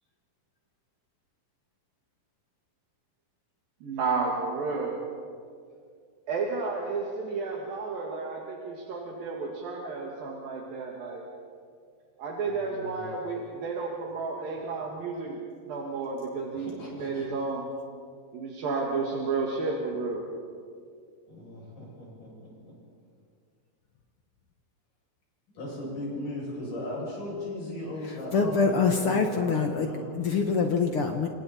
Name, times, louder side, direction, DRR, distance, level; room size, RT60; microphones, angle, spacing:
voice 1, 3.8-5.0 6.3-11.2 12.2-15.4 15.7-17.7 18.3-20.3, right 4 dB, 70° right, -2 dB, 3.7 m, -32 dB
voice 2, 12.4-13.2 16.5-17.4 21.3-22.7 25.5-30.0, left 1 dB, 60° left, -4 dB, 9.1 m, -38 dB
voice 3, 28.3-29.9 30.1-31.3, left 5 dB, 75° left, 4 dB, 1.3 m, -25 dB
29.5 x 26.5 x 4.3 m, 2.2 s
omnidirectional pair, 4.3 m